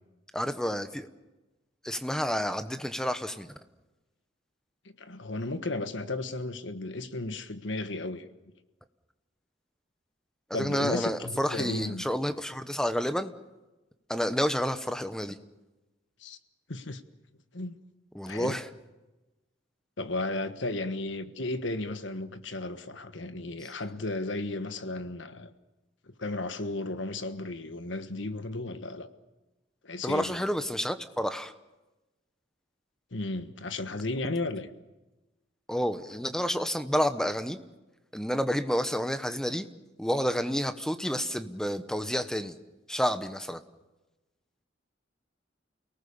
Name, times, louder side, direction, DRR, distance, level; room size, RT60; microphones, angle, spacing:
voice 1, 0.3-1.1 1.8-3.5 10.5-13.3 14.1-15.4 18.1-18.7 23.6-23.7 30.0-31.5 35.7-37.6 38.1-39.7 40.0-42.6 42.9-43.6, equal, 5° left, 1.0 m, -29 dB
voice 2, 5.0-8.3 10.5-12.0 16.2-16.4 16.7-17.0 17.5-17.8 18.3-18.6 20.0-25.5 26.2-29.1 29.8-30.4 33.1-34.7, left 2 dB, 75° left, 1.4 m, -34 dB
29.5 x 18.5 x 7.1 m
head